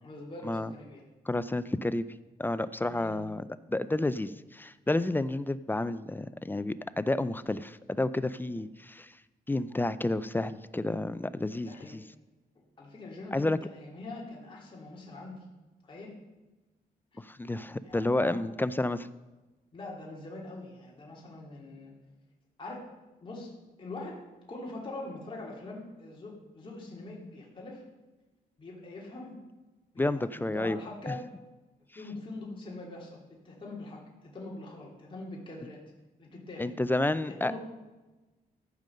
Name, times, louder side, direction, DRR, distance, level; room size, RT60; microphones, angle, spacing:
voice 1, 0.0-1.0 2.9-3.2 8.5-8.6 11.6-12.0 12.8-15.4 15.8-16.1 17.8-18.4 19.7-22.0 22.6-22.9 23.2-24.2 24.5-27.8 28.6-29.4 29.9-31.3 31.9-35.8 36.2-36.8 37.3-37.6, left 2 dB, 30° left, -3 dB, 2.8 m, -43 dB
voice 2, 1.3-2.1 2.4-9.1 9.5-12.0 13.3-13.6 17.2-19.1 30.0-30.8 31.1-31.2 36.6-37.6, left 2 dB, 10° left, 14 dB, 0.4 m, -30 dB
14.0 x 5.3 x 6.6 m, 1.1 s
cardioid pair, 110°, 16 cm